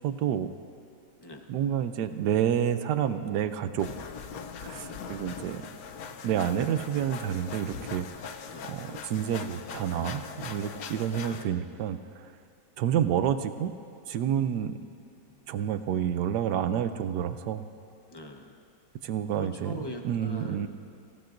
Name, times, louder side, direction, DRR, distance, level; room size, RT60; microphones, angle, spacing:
voice 1, 0.0-0.5 1.5-3.9 4.6-5.7 6.2-8.1 8.6-12.3 12.8-13.7 14.1-14.7 15.5-17.6 19.0-19.7 20.0-20.7, right 9 dB, 75° right, 10 dB, 1.2 m, -29 dB
sound 1, 3.8-11.4, left 6 dB, 65° left, 1.0 m, -41 dB
voice 2, 4.8-5.1 8.5-8.8 11.2-11.6 15.2-15.4 18.1-18.5 19.3-20.7, left 1 dB, 25° left, 3 dB, 0.6 m, -43 dB
24.0 x 16.0 x 2.6 m, 2.6 s
omnidirectional pair, 1.9 m